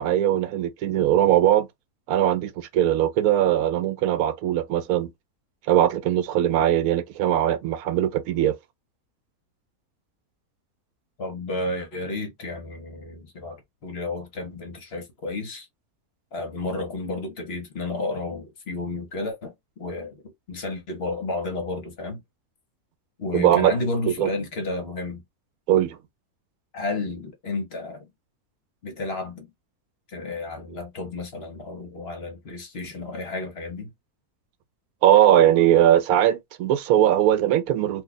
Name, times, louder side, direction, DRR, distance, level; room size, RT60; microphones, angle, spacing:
voice 1, 0.0-1.7 2.1-5.1 5.7-8.5 23.3-23.7 24.1-24.3 25.7-26.0 35.0-38.0, right 11 dB, 75° right, 1.0 m, -20 dB
voice 2, 11.2-15.7 16.3-20.2 20.5-22.2 23.2-25.2 26.7-28.1 28.8-29.5 30.1-33.9, left 2 dB, 50° left, 1.0 m, -32 dB
2.7 x 2.3 x 3.9 m
omnidirectional pair, 1.6 m